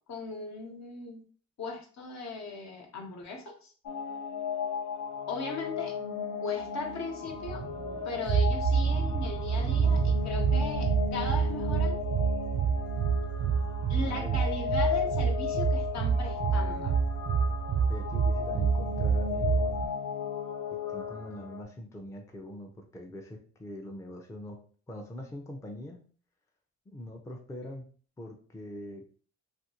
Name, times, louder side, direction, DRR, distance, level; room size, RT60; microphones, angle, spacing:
voice 1, 0.1-1.2 1.6-3.7 5.3-6.0 6.4-7.6 8.0-12.0 13.9-16.9, left 3 dB, 65° left, 1 dB, 1.0 m, -38 dB
sound 1, 3.9-21.6, left 7 dB, 85° left, 0.5 m, -35 dB
sound 2, 7.2-19.9, right 6 dB, 55° right, 0.4 m, -28 dB
voice 2, 13.9-14.4 17.9-19.9 20.9-24.6 24.9-26.0 26.9-27.9 28.2-29.2, left 1 dB, 10° left, 2 dB, 0.4 m, -43 dB
2.7 x 2.5 x 2.8 m, 0.42 s
cardioid pair, 90°, 30 cm